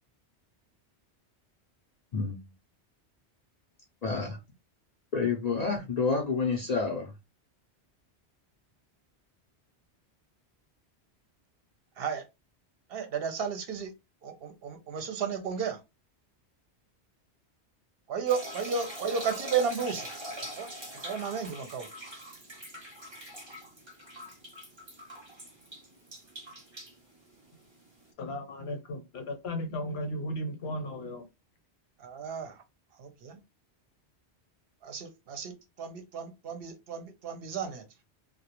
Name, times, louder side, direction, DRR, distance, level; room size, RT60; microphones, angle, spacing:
voice 1, 2.1-2.4 4.0-4.4 5.1-7.1, left 4 dB, 50° left, 0.5 m, -29 dB
voice 2, 12.9-13.9 14.2-15.8 18.1-20.1 20.4-20.7 21.0-21.9 32.0-32.6 33.0-33.4 34.8-37.8, right 6 dB, 65° right, 0.7 m, -33 dB
sound 1, 18.3-28.1, equal, 30° right, 0.7 m, -43 dB
voice 3, 28.2-31.2, left 1 dB, 70° left, 0.9 m, -35 dB
2.3 x 2.1 x 2.8 m
omnidirectional pair, 1.1 m